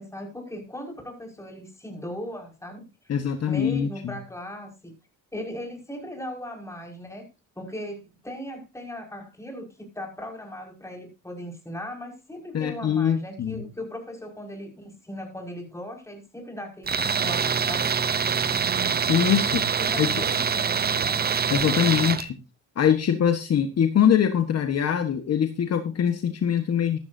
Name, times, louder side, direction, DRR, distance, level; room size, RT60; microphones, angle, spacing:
voice 1, 0.0-2.8 3.5-4.9 5.3-7.3 7.6-17.9 19.8-21.3, left 1 dB, 10° left, 1 dB, 5.6 m, -38 dB
voice 2, 3.1-4.2 12.5-13.6 19.1-19.6 20.0-20.2 21.5-22.3 22.8-27.0, left 8 dB, 55° left, 7 dB, 1.4 m, -23 dB
Tools, 16.9-22.3, right 6 dB, 30° right, 0.7 m, -25 dB
14.0 x 12.0 x 2.7 m, 0.26 s
cardioid pair, 90°, 30 cm